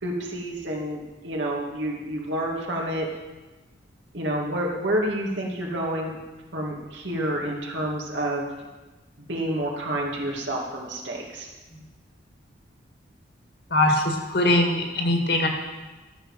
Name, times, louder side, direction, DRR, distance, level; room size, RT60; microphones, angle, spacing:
voice 1, 0.0-3.1 4.1-6.2 6.5-8.5 9.2-11.5, right 1 dB, 70° right, -1 dB, 2.4 m, -29 dB
voice 2, 13.7-15.5, left 1 dB, 60° left, 2 dB, 2.1 m, -22 dB
13.5 x 7.6 x 6.3 m, 1.2 s
head